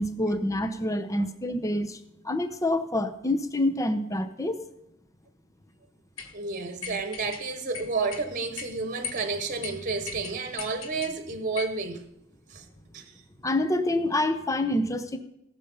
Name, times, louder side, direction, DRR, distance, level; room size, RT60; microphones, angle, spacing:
voice 1, 0.0-2.0 2.2-4.6 13.4-15.2, left 1 dB, 15° left, 0.8 m, -27 dB
sound 1, 6.2-6.3 6.8-7.4 7.7-8.3 8.6-8.7 9.0-9.3 9.6-9.7 10.1-11.1 11.6-11.8, left 6 dB, 75° left, 1.4 m, -38 dB
voice 2, 6.3-12.0 12.5-12.6 12.9-13.1, right 4 dB, 40° right, 1.2 m, -31 dB
18.0 x 6.7 x 5.5 m
head